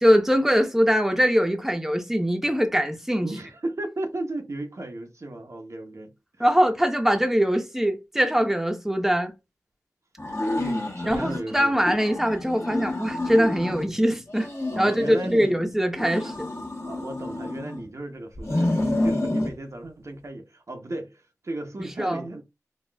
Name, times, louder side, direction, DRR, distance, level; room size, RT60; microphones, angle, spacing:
voice 1, 0.0-3.3 6.4-9.3 11.1-14.5 14.8-16.2 22.0-22.2, equal, 5° right, 0.7 m, -22 dB
voice 2, 3.2-6.5 10.6-11.8 14.7-15.6 16.0-16.3 16.8-22.4, right 2 dB, 55° right, 0.7 m, -35 dB
sound 1, 10.2-11.4 11.8-13.9 14.3-15.5 15.9-17.9 18.4-19.5, left 1 dB, 50° left, 1.1 m, -29 dB
4.0 x 2.3 x 2.2 m
cardioid pair, 40°, 6 cm